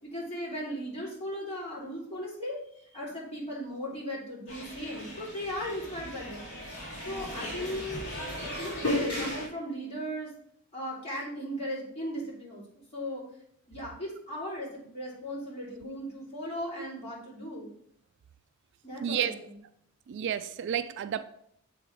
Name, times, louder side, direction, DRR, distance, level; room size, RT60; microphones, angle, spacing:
voice 1, 0.0-6.5 7.0-8.0 8.6-10.3 10.7-13.2 13.7-17.7 18.8-19.5, equal, 30° left, -6 dB, 2.7 m, -37 dB
sound 1, 4.5-9.5, left 1 dB, 60° left, 3.0 m, -36 dB
voice 2, 19.0-19.4 20.1-21.2, right 9 dB, 55° right, 12 dB, 0.3 m, -31 dB
7.7 x 3.5 x 4.7 m, 0.70 s
head